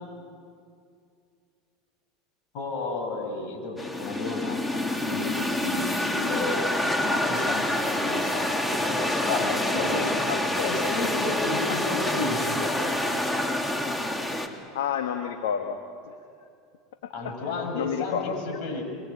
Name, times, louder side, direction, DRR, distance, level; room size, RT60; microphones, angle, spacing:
voice 1, 2.5-6.6 7.0-10.3 10.6-12.8 17.1-18.8, left 3 dB, 60° left, 3 dB, 7.3 m, -32 dB
sound 1, 3.8-14.5, left 1 dB, 10° left, 2.9 m, -27 dB
voice 2, 10.3-10.7 11.6-12.0 14.7-15.8 16.0-16.1 17.0-18.4, left 8 dB, 80° left, 5 dB, 1.7 m, -31 dB
25.0 x 25.0 x 8.9 m, 2.4 s
hypercardioid pair, 95°, 0 cm